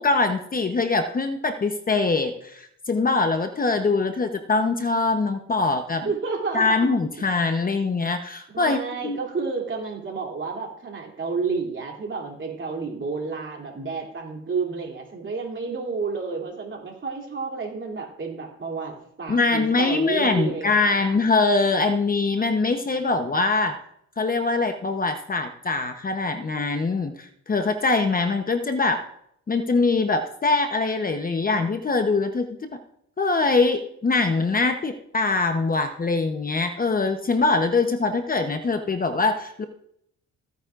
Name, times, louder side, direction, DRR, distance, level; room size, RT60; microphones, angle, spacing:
voice 1, 0.0-6.1 6.5-8.8 9.0-9.2 19.3-23.8 24.2-29.0 29.5-32.5 32.7-32.8 33.2-39.6, left 3 dB, 30° left, 6 dB, 0.9 m, -23 dB
voice 2, 6.0-6.9 8.5-21.1, right 4 dB, 40° right, 0 dB, 3.0 m, -30 dB
16.0 x 9.3 x 2.5 m, 0.71 s
cardioid pair, 90°, 30 cm